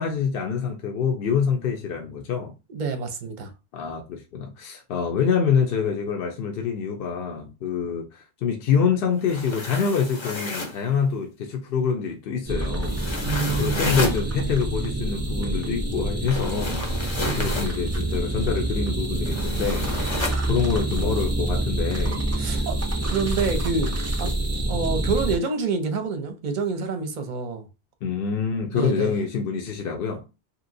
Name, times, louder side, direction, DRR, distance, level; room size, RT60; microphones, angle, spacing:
voice 1, 0.0-2.5 3.7-13.0 13.6-16.8 17.4-20.0 20.5-22.7 28.0-30.3, left 6 dB, 70° left, 0.7 m, -26 dB
voice 2, 2.7-3.5 13.2-14.0 17.2-17.6 22.4-22.8 23.0-24.3 24.7-27.7 28.7-29.1, right 4 dB, 55° right, 0.7 m, -27 dB
sound 1, 9.2-10.8 12.8-14.2 16.2-17.7 19.2-20.4, left 2 dB, 35° left, 0.6 m, -31 dB
sound 2, 12.5-25.4, right 1 dB, 25° right, 0.4 m, -27 dB
2.8 x 2.8 x 2.6 m
omnidirectional pair, 1.0 m